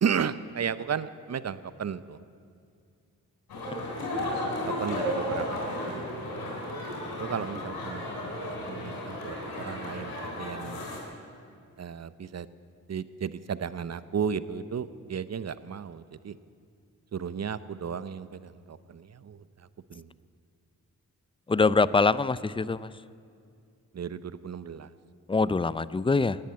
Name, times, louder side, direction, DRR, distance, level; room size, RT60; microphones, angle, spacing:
voice 1, 0.0-2.2 4.1-4.5 4.8-5.6 5.9-6.1 7.2-8.1 8.7-10.8 11.8-12.5 12.9-16.4 17.1-19.4 19.9-20.1 23.9-24.9, right 7 dB, 45° right, 16 dB, 0.8 m, -34 dB
sound 1, 3.5-11.0, left 1 dB, 80° left, 3.9 m, -34 dB
voice 2, 21.5-22.9 25.3-26.4, left 4 dB, 15° left, 18 dB, 0.5 m, -24 dB
18.0 x 10.5 x 7.7 m, 2.3 s
supercardioid pair, 40°, 36 cm